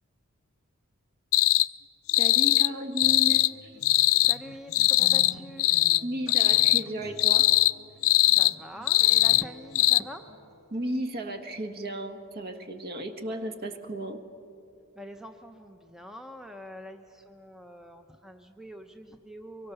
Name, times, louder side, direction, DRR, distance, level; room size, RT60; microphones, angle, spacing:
sound 1, 1.3-1.7 2.1-2.7 3.0-3.5 3.8-4.4 4.7-5.3 5.6-6.0 6.3-6.8 7.2-7.7 8.0-8.5 8.9-9.4 9.7-10.0, left 17 dB, 70° left, 0.4 m, -21 dB
voice 1, 2.2-3.8 6.0-7.5 10.7-14.2, right 1 dB, 45° right, 6 dB, 1.5 m, -34 dB
Acoustic guitar, 3.0-11.0, equal, 20° right, 2.3 m, -50 dB
voice 2, 4.2-5.7 8.3-10.3 15.0-19.7, equal, ahead, 6 dB, 0.7 m, -44 dB
24.0 x 23.0 x 6.9 m, 2.7 s
head